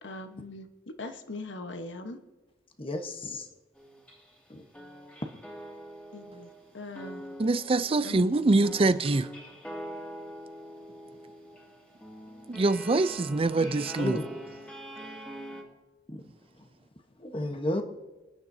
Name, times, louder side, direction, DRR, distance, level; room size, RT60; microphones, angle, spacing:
voice 1, 0.0-2.2 6.1-6.5 6.7-7.2 8.0-8.8 13.6-13.8, left 2 dB, 90° left, 1.1 m, -41 dB
voice 2, 2.8-3.4 4.5-4.6 14.0-14.3 16.1-16.2 17.2-17.8, left 1 dB, 30° left, 1.1 m, -32 dB
sound 1, 3.7-4.5 4.7-15.6, right 1 dB, 5° left, 2.3 m, -44 dB
voice 3, 7.4-9.3 12.5-14.2, right 3 dB, 30° right, 0.5 m, -24 dB
27.5 x 10.0 x 2.7 m
head